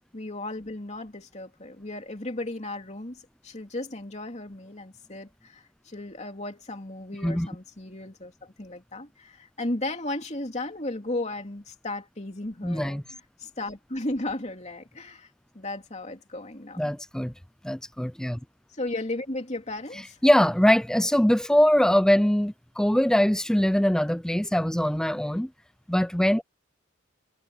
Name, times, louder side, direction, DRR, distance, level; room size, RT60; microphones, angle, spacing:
voice 1, 0.1-13.0 13.4-15.3 15.5-16.9 18.7-20.2, left 2 dB, 30° left, 3.0 m, -35 dB
voice 2, 12.6-13.0 16.8-17.3 17.6-18.4 20.2-25.5 25.9-26.4, equal, 5° left, 0.4 m, -22 dB
head